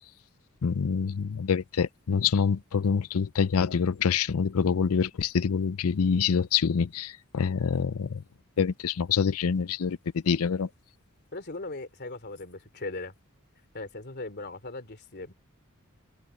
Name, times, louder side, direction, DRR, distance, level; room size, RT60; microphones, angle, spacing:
voice 1, 0.6-8.2 8.6-10.7, left 6 dB, 75° left, 0.5 m, -26 dB
voice 2, 11.3-13.1 13.7-15.3, left 2 dB, 50° left, 3.0 m, -38 dB
head